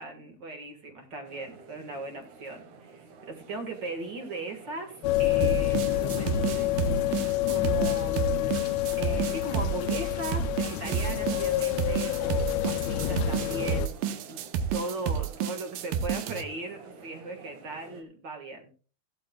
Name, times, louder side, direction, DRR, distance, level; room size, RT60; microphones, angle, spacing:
voice 1, 0.0-7.2 7.5-8.7 9.0-14.4 14.7-18.7, right 2 dB, 40° right, 5 dB, 1.8 m, -38 dB
sound 1, 1.2-18.0, right 4 dB, 65° right, 2.6 m, -50 dB
sound 2, 5.0-13.9, left 14 dB, 80° left, 1.6 m, -28 dB
sound 3, 5.4-16.4, right 8 dB, 80° right, 2.5 m, -30 dB
16.5 x 12.0 x 2.3 m, 0.38 s
omnidirectional pair, 3.9 m